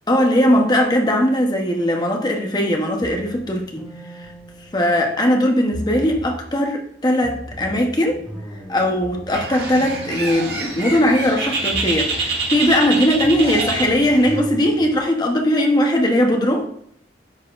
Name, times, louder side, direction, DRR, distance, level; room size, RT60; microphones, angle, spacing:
voice 1, 0.1-3.8 4.2-4.3 4.7-8.2 8.7-16.7, equal, 25° left, 2 dB, 0.8 m, -19 dB
sound 1, 3.0-5.3 5.7-6.6 7.2-11.3 11.7-12.5 13.2-15.0, equal, 10° left, 1.5 m, -37 dB
Bird, 9.3-14.4, right 3 dB, 65° right, 1.4 m, -26 dB
9.6 x 4.1 x 2.5 m, 0.69 s
head